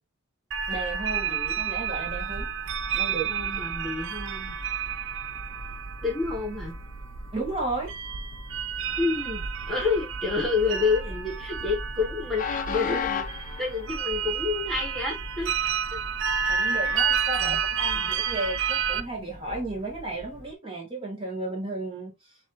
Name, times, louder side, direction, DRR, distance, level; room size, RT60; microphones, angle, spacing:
sound 1, 0.5-19.0, right 7 dB, 55° right, 0.4 m, -30 dB
voice 1, 0.7-2.5 2.9-3.3 7.3-7.9 16.5-22.1, right 2 dB, 25° right, 1.4 m, -33 dB
Train, 2.0-20.5, left 5 dB, 35° left, 0.5 m, -40 dB
voice 2, 3.3-4.5 6.0-6.7 9.0-9.4 9.7-13.3 13.6-15.5 15.9-16.0 16.4-16.8 17.4-17.6 17.9-18.1, left 4 dB, ahead, 1.4 m, -29 dB
6.2 x 2.7 x 2.6 m
head